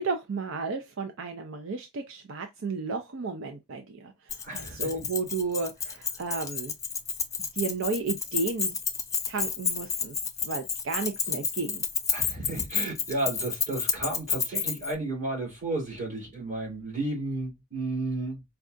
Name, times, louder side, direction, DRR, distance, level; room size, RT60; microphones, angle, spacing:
voice 1, 0.0-6.7 7.5-8.8 9.3-10.2 10.4-11.8, right 4 dB, 70° right, 0.5 m, -33 dB
Keys jangling, 4.3-14.9, left 6 dB, 15° left, 0.3 m, -30 dB
voice 2, 4.4-4.9 12.1-18.4, right 2 dB, 35° right, 2.5 m, -33 dB
4.6 x 2.3 x 2.5 m
head